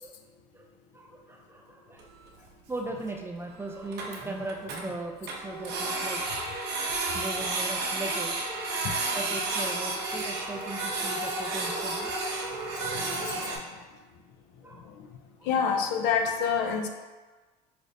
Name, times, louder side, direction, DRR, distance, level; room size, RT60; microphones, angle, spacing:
voice 1, 0.9-2.0 2.4-6.2 7.1-8.4 9.1-12.1 12.7-12.9 13.3-13.5 14.6-14.8 15.4-15.7, right 2 dB, 10° right, 1 dB, 0.3 m, -38 dB
Printer, 2.0-2.1 2.3-2.4 2.7-2.8 3.1-3.2 3.5-3.6 3.8-4.8 5.3-13.6, right 3 dB, 55° right, 0.7 m, -31 dB
voice 2, 12.9-13.6 15.5-16.9, left 6 dB, 65° left, 5 dB, 0.5 m, -27 dB
4.9 x 2.0 x 2.6 m, 1.3 s
supercardioid pair, 90°, 21 cm